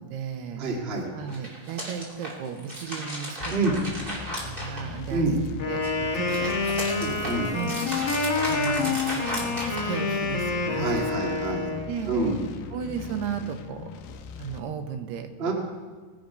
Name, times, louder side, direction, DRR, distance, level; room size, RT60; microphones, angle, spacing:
voice 1, 0.0-0.6 1.1-3.5 3.8-3.9 4.4-5.4 5.7-6.6 7.5-7.7 8.4-11.4 11.9-12.1 12.7-14.0 14.4-15.5, right 7 dB, 85° right, 7 dB, 2.9 m, -35 dB
voice 2, 0.6-1.1 3.5-3.8 5.1-5.3 6.3-6.4 7.0-7.5 10.8-11.7 12.1-12.4 15.4-15.5, right 3 dB, 55° right, -1 dB, 0.6 m, -27 dB
sound 1, 1.2-5.3 5.7-10.3, equal, 15° right, 2.0 m, -35 dB
sound 2, 3.4-14.6, left 6 dB, 75° left, 2.1 m, -40 dB
Wind instrument woodwind instrument, 5.6-11.9, left 3 dB, 60° left, 1.2 m, -28 dB
20.0 x 7.3 x 5.2 m, 1.4 s
omnidirectional pair, 4.7 m